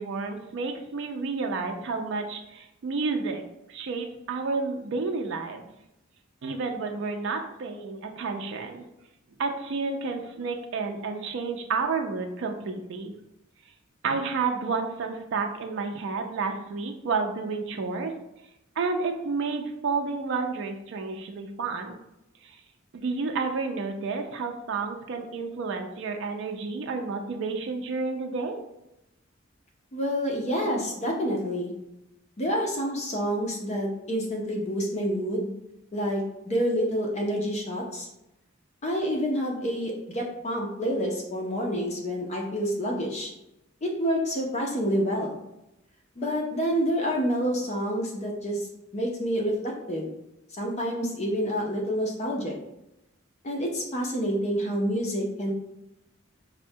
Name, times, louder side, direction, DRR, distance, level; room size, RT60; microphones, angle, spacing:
voice 1, 0.0-3.4 3.7-5.7 6.4-8.8 9.4-13.1 14.0-18.1 18.8-22.0 22.4-22.6 22.9-28.6, right 4 dB, 65° right, 4 dB, 0.4 m, -30 dB
voice 2, 29.9-31.7 32.4-35.5 35.9-38.1 38.8-43.3 43.8-45.4 46.2-48.7 48.9-50.1 50.6-52.6 53.4-55.5, equal, 35° left, 0 dB, 0.5 m, -28 dB
4.3 x 2.1 x 2.7 m, 0.89 s
head